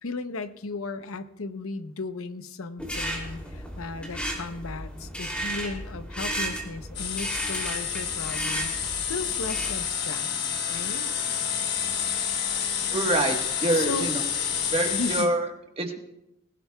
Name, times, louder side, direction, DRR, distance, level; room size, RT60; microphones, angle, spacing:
voice 1, 0.0-8.8 9.1-10.3 10.7-11.1 13.7-14.1 14.9-15.3, left 3 dB, 90° left, 10 dB, 0.8 m, -35 dB
sound 1, 2.8-9.9, right 1 dB, 5° left, 2.9 m, -34 dB
sound 2, 7.0-15.3, left 8 dB, 50° left, 1.3 m, -29 dB
voice 2, 12.9-14.2 14.7-15.5 15.8-16.0, right 2 dB, 30° right, 2 dB, 1.4 m, -26 dB
21.0 x 17.0 x 2.3 m, 0.86 s
head